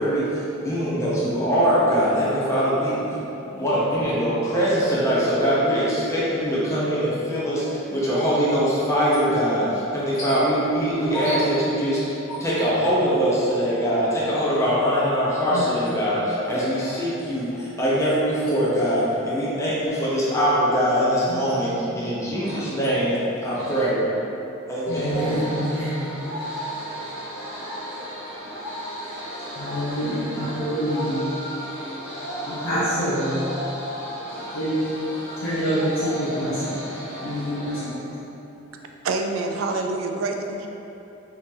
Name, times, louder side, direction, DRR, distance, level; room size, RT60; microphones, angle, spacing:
voice 1, 0.0-3.1 3.4-24.1 24.7-25.4, equal, 15° left, -8 dB, 0.5 m, -22 dB
voice 2, 2.2-2.6 11.1-11.6 12.3-12.4 15.5-15.7 16.4-16.5 16.8-17.0 21.3-21.5 22.4-22.6 23.5-23.9 24.9-37.9 39.6-39.7, equal, 85° left, -12 dB, 0.7 m, -28 dB
voice 3, 39.0-40.7, right 3 dB, 70° right, 3 dB, 0.3 m, -26 dB
2.8 x 2.5 x 3.7 m, 3.0 s
head